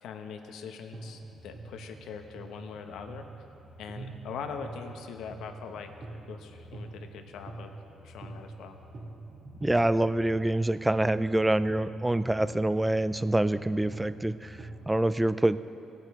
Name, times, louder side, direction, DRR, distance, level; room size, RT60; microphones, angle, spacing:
voice 1, 0.0-3.3 3.8-5.9 6.3-7.7 8.0-8.8, left 6 dB, 80° left, 6 dB, 0.8 m, -42 dB
sound 1, 0.9-14.9, right 2 dB, 50° right, 1.8 m, -45 dB
voice 2, 9.6-15.6, right 1 dB, 10° right, 14 dB, 0.3 m, -26 dB
18.0 x 8.9 x 3.6 m, 2.9 s
cardioid pair, 90°, 0 cm